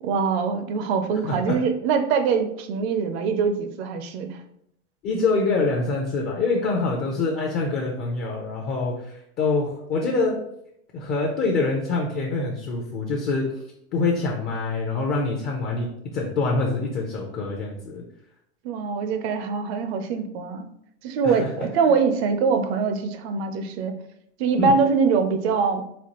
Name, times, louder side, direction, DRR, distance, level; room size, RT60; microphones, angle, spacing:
voice 1, 0.0-4.4 18.6-20.7 21.0-23.9 24.4-25.8, right 5 dB, 65° right, 8 dB, 0.6 m, -23 dB
voice 2, 1.2-1.6 5.0-10.4 10.9-13.6 13.9-15.9 16.1-18.0 21.2-21.7 24.6-24.7, left 3 dB, 30° left, -1 dB, 0.5 m, -25 dB
4.2 x 2.3 x 2.9 m, 0.75 s
supercardioid pair, 135°, 35 cm